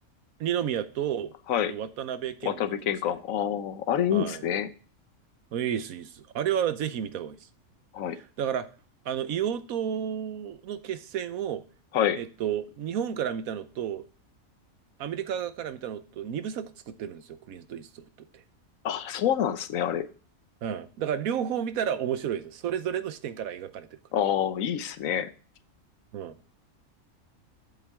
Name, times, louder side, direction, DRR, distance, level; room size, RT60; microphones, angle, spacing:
voice 1, 0.4-1.3 1.7-2.6 4.1-4.4 5.5-7.4 8.1-8.7 9.0-11.6 12.2-14.0 15.0-18.0 18.3-18.4 20.6-24.0 26.1-26.4, right 9 dB, 80° right, 1.2 m, -31 dB
voice 2, 2.4-4.7 7.9-8.2 11.9-12.2 18.8-20.1 24.1-25.3, left 9 dB, 75° left, 1.1 m, -27 dB
8.3 x 7.6 x 3.5 m
omnidirectional pair, 1.4 m